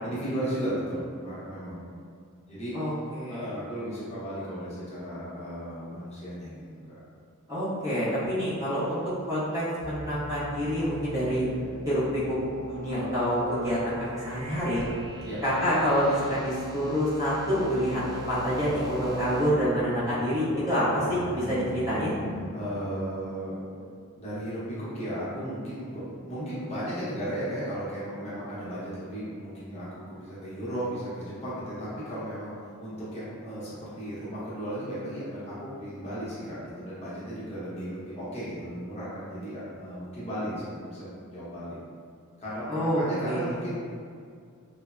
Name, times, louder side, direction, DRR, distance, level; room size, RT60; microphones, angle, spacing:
voice 1, 0.0-1.8 2.5-2.7 3.3-7.0 15.2-15.4 22.5-23.6 24.2-41.8 42.4-43.8, equal, 30° left, -10 dB, 0.7 m, -35 dB
voice 2, 2.7-3.5 7.5-9.0 9.3-11.5 11.8-14.8 15.4-22.1 42.7-43.5, equal, 15° right, -11 dB, 0.7 m, -27 dB
Growling, 7.7-13.9 14.3-16.7 18.1-22.5, left 2 dB, 60° left, 0.3 m, -42 dB
sound 1, 9.8-19.5, right 1 dB, 80° right, 0.5 m, -41 dB
3.1 x 2.0 x 2.3 m, 2.2 s
head